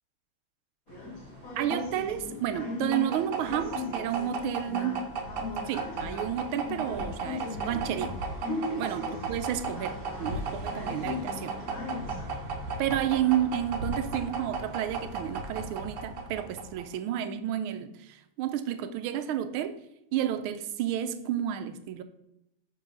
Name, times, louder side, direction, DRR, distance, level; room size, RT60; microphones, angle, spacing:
sound 1, 0.9-12.3, left 2 dB, 50° left, 1.5 m, -39 dB
sound 2, 0.9-17.0, right 3 dB, 65° right, 1.3 m, -36 dB
voice 1, 1.6-5.1 5.7-8.2 8.8-11.5 12.8-19.7 20.1-22.0, right 10 dB, 85° right, 10 dB, 1.4 m, -31 dB
5.4 x 3.8 x 5.2 m, 0.84 s
omnidirectional pair, 2.3 m